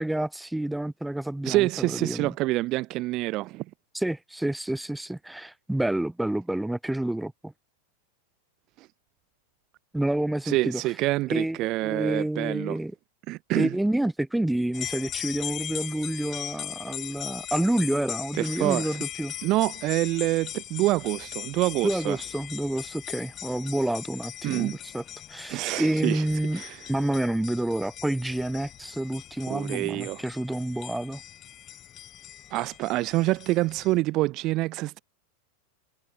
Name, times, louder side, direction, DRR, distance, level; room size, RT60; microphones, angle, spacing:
voice 1, 0.0-2.3 3.9-7.5 9.9-10.8 11.3-12.9 13.6-19.3 21.8-25.0 25.3-26.6 26.9-31.2, right 1 dB, 5° right, 3.3 m, -28 dB
voice 2, 1.4-3.7 8.8-8.9 10.4-12.8 13.3-13.8 18.4-19.0 19.4-22.2 24.4-24.8 25.5-26.2 26.5-26.8 29.5-30.2 32.5-35.0, right 19 dB, 40° right, 1.8 m, -26 dB
sound 1, 14.7-34.0, left 11 dB, 30° left, 5.3 m, -39 dB
figure-of-eight pair, 90°, 0 cm